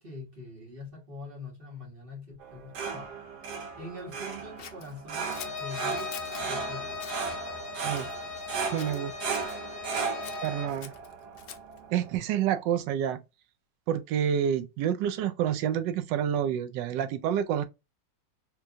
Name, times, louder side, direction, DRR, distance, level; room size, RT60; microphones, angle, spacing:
voice 1, 0.0-5.3 5.6-7.3, left 2 dB, 35° right, 1.5 m, -44 dB
sound 1, 2.4-12.1, right 5 dB, 70° right, 1.4 m, -36 dB
Scissors, 4.6-6.5 6.9-7.3 7.9-8.5 8.8-9.6 10.2-11.8, left 9 dB, 70° left, 0.8 m, -46 dB
Bowed string instrument, 5.2-10.8, left 6 dB, 50° left, 1.1 m, -39 dB
voice 2, 8.7-9.1 10.4-10.9 11.9-13.2 13.9-17.6, right 9 dB, 85° right, 1.2 m, -28 dB
3.5 x 3.0 x 2.4 m
omnidirectional pair, 1.9 m